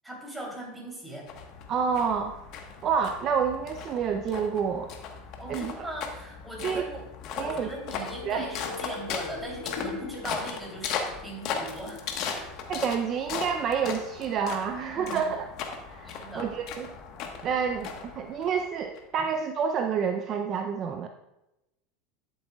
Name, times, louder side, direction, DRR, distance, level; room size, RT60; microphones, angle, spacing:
voice 1, 0.0-1.3 5.4-7.0 7.3-12.6 14.9-15.3 16.0-16.5, right 1 dB, 10° right, -2 dB, 3.0 m, -39 dB
sound 1, 1.3-19.0, left 6 dB, 55° left, 1.2 m, -38 dB
voice 2, 1.7-2.3 2.8-4.9 5.5-5.9 6.6-6.8 7.4-7.7 8.2-8.5 12.7-15.5 15.9-16.9 17.4-21.1, right 6 dB, 40° right, 6 dB, 0.5 m, -28 dB
sound 2, 7.6-13.3 13.6-13.7, left 5 dB, 75° left, 1.2 m, -43 dB
11.5 x 7.3 x 2.3 m, 0.94 s
supercardioid pair, 115°, 0 cm